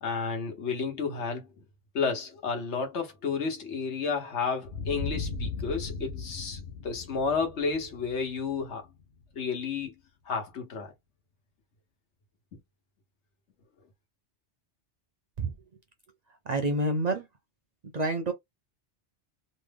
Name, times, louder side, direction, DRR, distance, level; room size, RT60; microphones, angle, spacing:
voice 1, 0.0-1.5 1.9-8.9 9.3-10.0 10.2-10.9 12.5-12.6, left 5 dB, 80° left, 1.3 m, -31 dB
sound 1, 4.6-9.2, left 3 dB, 65° left, 0.8 m, -37 dB
voice 2, 16.5-17.3 17.9-18.3, right 2 dB, 50° right, 0.5 m, -27 dB
3.2 x 2.1 x 3.4 m
omnidirectional pair, 1.2 m